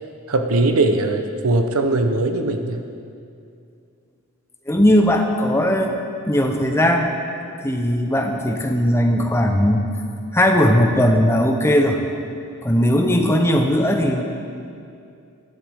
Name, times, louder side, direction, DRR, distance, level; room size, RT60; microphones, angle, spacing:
voice 1, 0.3-2.8, right 2 dB, 90° right, 6 dB, 0.8 m, -20 dB
voice 2, 4.7-6.0 6.3-7.1 7.6-9.9 10.3-12.0 12.6-14.2, equal, 10° left, 3 dB, 0.7 m, -18 dB
11.5 x 10.5 x 3.5 m, 2.5 s
head